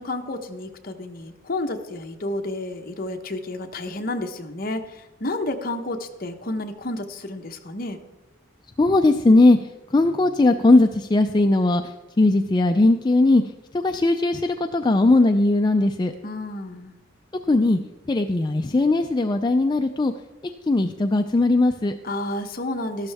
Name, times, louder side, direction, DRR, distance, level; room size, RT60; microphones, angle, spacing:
voice 1, 0.0-8.0 16.2-16.9 22.0-23.1, left 2 dB, 45° left, 5 dB, 1.0 m, -31 dB
voice 2, 8.8-13.4 13.7-16.1 17.5-17.8 18.1-20.1 20.7-21.9, left 2 dB, 20° left, 6 dB, 0.4 m, -19 dB
13.0 x 12.0 x 3.5 m, 1.1 s
head